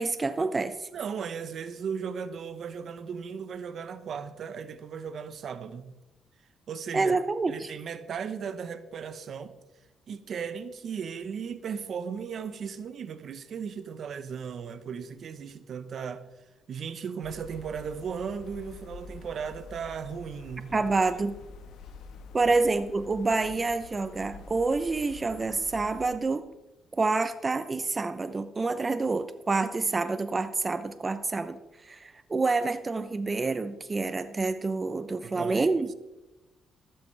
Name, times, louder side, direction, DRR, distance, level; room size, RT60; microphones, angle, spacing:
voice 1, 0.0-0.9 6.9-7.7 20.7-21.4 22.3-26.4 26.9-35.9, right 3 dB, 25° right, 0.6 m, -28 dB
voice 2, 0.9-5.9 6.7-7.2 7.5-9.5 10.1-16.3 16.7-20.8 22.5-22.6 35.2-35.7, right 6 dB, 60° right, 1.0 m, -36 dB
sound 1, 17.2-26.2, left 5 dB, 80° left, 1.3 m, -47 dB
14.5 x 12.5 x 3.4 m
cardioid pair, 90°, 0 cm